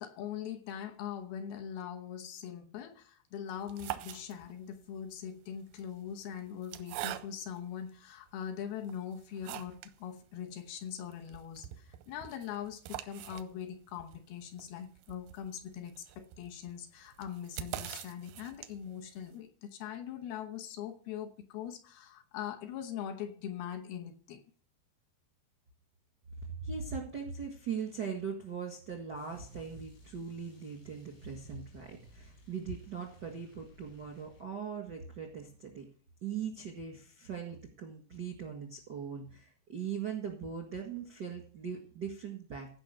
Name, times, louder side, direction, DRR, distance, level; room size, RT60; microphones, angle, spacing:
voice 1, 0.0-24.4, left 9 dB, 70° left, 2.8 m, -42 dB
sound 1, 3.5-4.7 5.6-7.7 8.3-8.4 8.8-10.0 10.3-10.4 10.7-10.8 11.1-19.0, right 14 dB, 80° right, 2.1 m, -44 dB
voice 2, 26.6-35.8 36.2-42.7, right 6 dB, 60° right, 1.1 m, -40 dB
sound 2, 29.1-34.5, equal, 90° left, 7.0 m, -59 dB
16.0 x 5.5 x 6.6 m
omnidirectional pair, 4.9 m